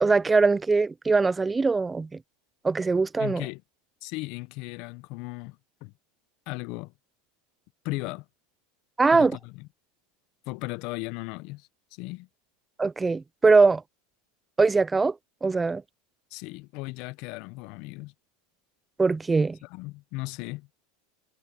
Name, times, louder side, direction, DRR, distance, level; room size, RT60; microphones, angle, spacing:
voice 1, 0.0-2.2 2.6-3.5 9.0-9.4 12.8-13.8 14.6-15.2 15.4-15.8 19.0-19.6, right 4 dB, 10° right, 0.4 m, -22 dB
voice 2, 3.2-3.6 4.0-5.9 6.5-6.9 7.8-8.3 9.1-9.7 10.5-12.3 16.3-18.1 19.6-20.7, left 23 dB, 55° left, 0.6 m, -36 dB
supercardioid pair, 140°, 0 cm